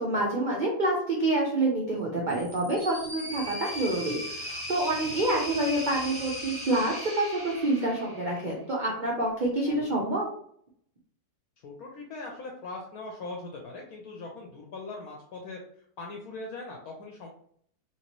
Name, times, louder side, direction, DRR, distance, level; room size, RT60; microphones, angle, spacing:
voice 1, 0.0-10.3, right 2 dB, 80° right, -2 dB, 0.4 m, -27 dB
sound 1, 2.3-8.5, equal, 20° left, 0.9 m, -38 dB
voice 2, 11.6-17.3, left 3 dB, 70° left, 0 dB, 1.0 m, -41 dB
3.0 x 2.8 x 2.9 m, 0.63 s
omnidirectional pair, 1.8 m